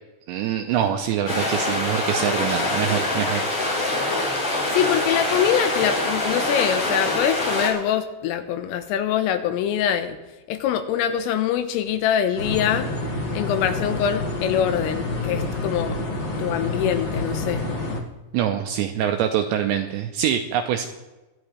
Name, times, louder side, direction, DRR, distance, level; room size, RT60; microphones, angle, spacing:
voice 1, 0.3-3.4 18.3-20.9, right 10 dB, 90° right, 5 dB, 2.6 m, -24 dB
sound 1, 1.3-7.7, left 2 dB, 40° left, 5.4 m, -24 dB
voice 2, 4.7-10.2 10.5-12.9 13.3-16.0 16.4-17.6, left 9 dB, 85° left, 9 dB, 3.5 m, -24 dB
sound 2, 12.4-18.0, left 2 dB, 60° left, 1.7 m, -28 dB
24.0 x 11.5 x 3.3 m, 1.1 s
omnidirectional pair, 5.9 m